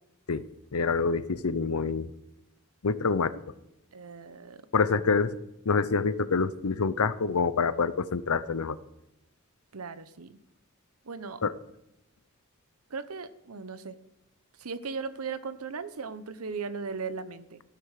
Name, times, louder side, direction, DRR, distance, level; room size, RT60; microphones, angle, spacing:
voice 1, 0.7-2.1 2.8-3.3 4.7-5.4 5.7-8.8 11.4-11.5, left 4 dB, 80° left, 15 dB, 0.7 m, -26 dB
voice 2, 3.9-4.6 9.7-10.4 11.0-11.4 12.9-13.9 14.6-17.6, right 5 dB, 80° right, 13 dB, 0.9 m, -38 dB
14.0 x 13.0 x 4.9 m, 0.88 s
head